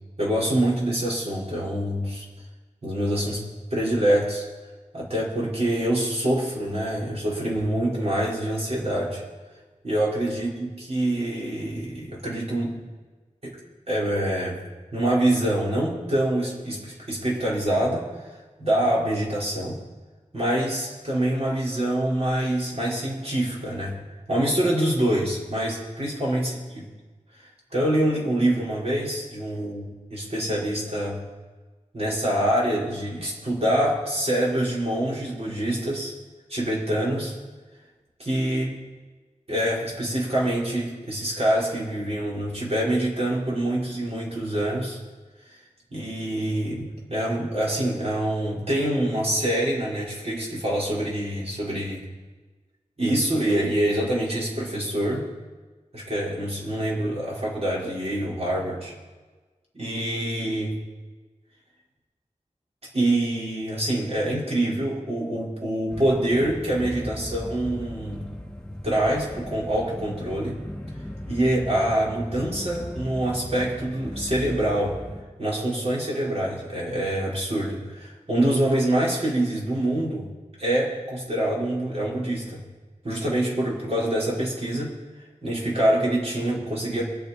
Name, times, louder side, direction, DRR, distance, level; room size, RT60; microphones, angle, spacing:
voice 1, 0.2-2.3 2.8-3.4 3.7-4.5 4.9-9.2 9.8-12.8 13.4-13.6 13.9-14.6 14.9-18.3 18.6-19.8 20.3-24.0 24.3-26.8 27.7-29.8 30.1-31.2 31.9-36.1 36.5-37.4 38.2-38.8 39.5-45.0 45.9-52.0 53.0-55.3 55.9-58.9 59.7-60.8 62.9-68.2 68.8-70.6 71.3-75.0 75.4-80.3 80.6-82.6 83.0-85.0 85.4-87.0, right 1 dB, 55° right, -5 dB, 5.3 m, -25 dB
sound 1, 65.9-75.2, left 1 dB, 5° left, 3.0 m, -37 dB
24.5 x 8.5 x 4.5 m, 1.3 s
wide cardioid pair, 60°, 13 cm